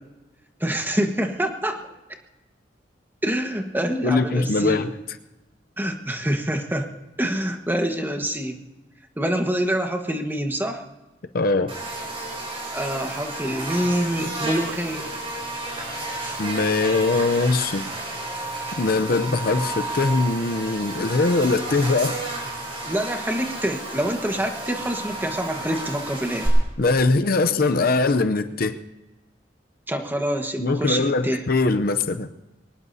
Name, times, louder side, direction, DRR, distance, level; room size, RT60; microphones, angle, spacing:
voice 1, 0.6-1.8 3.2-4.8 5.8-6.9 7.2-8.5 9.2-10.8 12.7-15.1 16.1-16.3 22.8-26.5 29.9-31.4, right 1 dB, 10° right, 4 dB, 1.4 m, -26 dB
voice 2, 4.0-4.9 11.3-11.7 16.4-17.9 18.8-22.2 26.8-28.8 30.6-32.3, left 3 dB, 55° left, 9 dB, 0.6 m, -21 dB
Buzz, 11.7-26.5, right 2 dB, 30° right, 6.0 m, -32 dB
23.0 x 19.0 x 2.8 m, 1.1 s
head